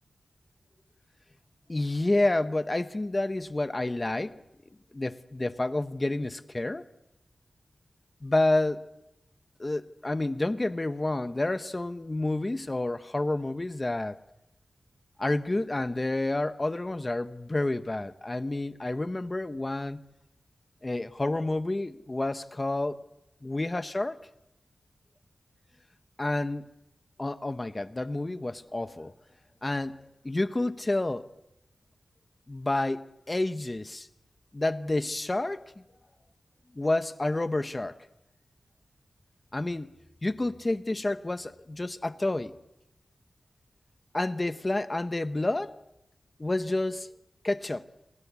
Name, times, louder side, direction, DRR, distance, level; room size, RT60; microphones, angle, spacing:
voice 1, 1.7-4.4 4.9-6.8 8.2-8.9 9.6-14.2 15.2-20.0 20.8-23.0 23.4-24.2 26.2-26.7 27.2-29.1 29.6-29.9 30.2-31.3 32.5-34.1 34.5-35.8 36.7-38.0 39.5-39.9 40.2-42.5 44.1-45.8 46.4-47.1 47.4-47.8, left 2 dB, 25° left, 0.9 m, -29 dB
28.0 x 19.0 x 8.3 m
wide cardioid pair, 125°, 0 cm